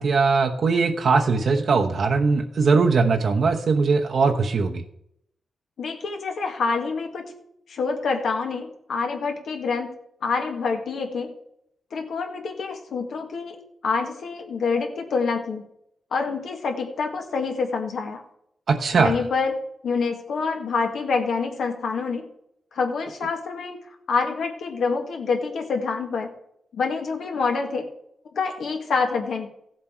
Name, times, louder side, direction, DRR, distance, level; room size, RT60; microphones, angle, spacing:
voice 1, 0.0-4.8 18.7-19.1, right 4 dB, 55° right, 2 dB, 1.0 m, -20 dB
voice 2, 5.8-7.3 7.7-9.9 10.2-11.3 11.9-13.6 13.8-15.7 16.1-18.2 18.9-19.6 19.8-22.3 22.7-23.8 24.1-26.3 26.7-27.9 28.3-29.5, left 4 dB, 75° left, 3 dB, 1.9 m, -26 dB
15.0 x 7.6 x 4.5 m, 0.75 s
wide cardioid pair, 125°, 0 cm